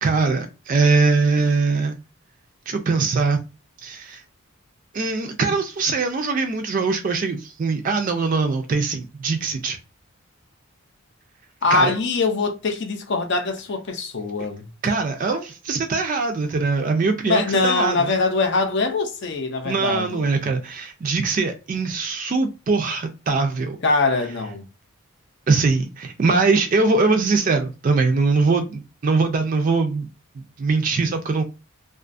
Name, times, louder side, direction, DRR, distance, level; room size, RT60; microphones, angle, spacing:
voice 1, 0.0-2.0 2.7-3.4 3.8-4.2 4.9-9.8 11.7-11.9 14.8-18.1 19.6-23.8 25.5-30.1 30.4-31.4, right 4 dB, 40° right, 0.3 m, -22 dB
voice 2, 11.6-14.7 17.3-20.3 23.8-24.6, left 3 dB, 55° left, 0.5 m, -22 dB
2.4 x 2.3 x 2.4 m
head